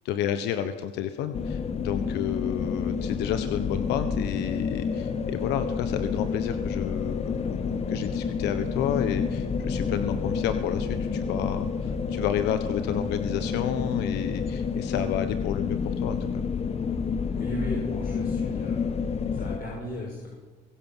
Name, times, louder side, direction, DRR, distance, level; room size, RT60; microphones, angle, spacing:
voice 1, 0.0-16.4, left 10 dB, 90° left, 9 dB, 1.3 m, -31 dB
sound 1, 1.3-19.6, left 5 dB, 40° left, 1.4 m, -29 dB
voice 2, 17.3-19.1 19.3-20.3, left 1 dB, 60° left, -1 dB, 6.1 m, -36 dB
24.5 x 16.5 x 7.4 m, 1.3 s
cardioid pair, 110°, 17 cm